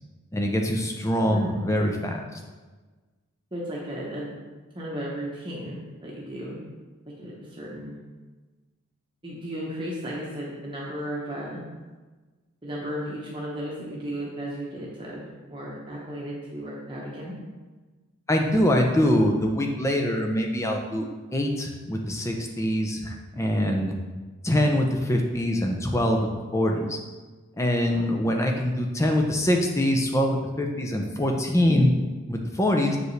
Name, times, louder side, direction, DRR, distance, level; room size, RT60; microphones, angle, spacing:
voice 1, 0.3-2.4 18.3-21.1 21.3-23.9 24.4-27.0 27.6-31.9 32.3-33.0, left 1 dB, 15° left, 2 dB, 0.6 m, -24 dB
voice 2, 3.5-4.3 4.7-6.6 7.2-8.0 9.2-11.6 12.6-17.4 27.9-28.0, equal, 20° right, -5 dB, 1.0 m, -35 dB
7.8 x 5.1 x 3.3 m, 1.3 s
head